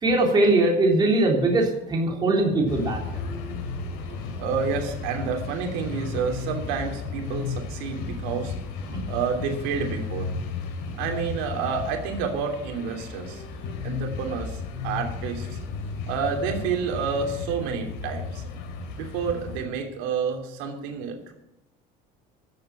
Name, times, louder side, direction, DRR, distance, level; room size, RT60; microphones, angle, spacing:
voice 1, 0.0-3.0 8.9-9.0, right 2 dB, 20° right, -1 dB, 3.4 m, -21 dB
sound 1, 2.7-19.6, left 4 dB, 80° left, 3.9 m, -34 dB
voice 2, 4.4-8.5 9.1-10.3 11.0-13.4 13.8-15.6 16.1-18.4 18.9-21.3, right 6 dB, 85° right, 3 dB, 3.0 m, -29 dB
13.5 x 7.6 x 8.9 m, 0.90 s
cardioid pair, 155°, 19 cm